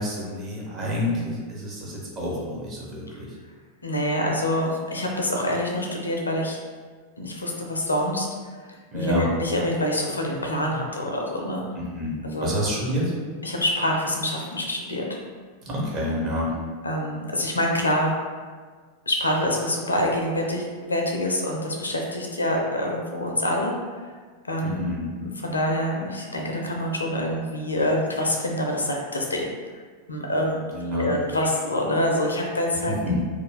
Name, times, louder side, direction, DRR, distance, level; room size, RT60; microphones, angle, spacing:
voice 1, 0.0-3.3 8.9-9.3 11.7-12.1 12.4-13.1 15.6-16.5 24.6-25.1 30.7-31.1 32.9-33.2, left 1 dB, 30° right, -5 dB, 1.0 m, -28 dB
voice 2, 3.8-6.6 7.2-8.3 8.9-11.6 12.2-12.5 13.4-15.0 16.8-18.1 19.1-23.7 24.5-24.9 25.2-29.4 30.1-30.6 30.9-32.9, left 1 dB, 80° left, 0 dB, 0.4 m, -26 dB
2.4 x 2.2 x 3.6 m, 1.5 s
figure-of-eight pair, 90°, 0 cm